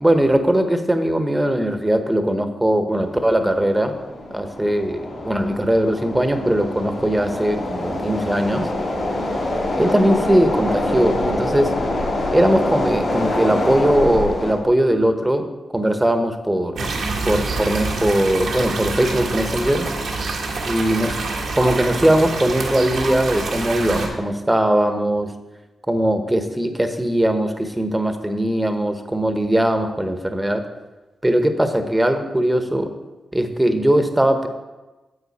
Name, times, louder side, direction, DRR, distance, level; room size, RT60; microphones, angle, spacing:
voice 1, 0.0-3.9 4.3-8.7 9.8-11.7 12.3-16.9 17.3-19.9 20.7-21.2 21.5-25.3 25.9-30.6 31.2-32.9 33.3-34.5, right 1 dB, 10° right, 7 dB, 1.2 m, -20 dB
sound 1, 3.0-14.5, left 1 dB, 65° left, 3.0 m, -25 dB
sound 2, 16.8-24.1, right 3 dB, 75° right, 1.7 m, -26 dB
9.5 x 7.7 x 4.3 m, 1.1 s
cardioid pair, 55°, 0 cm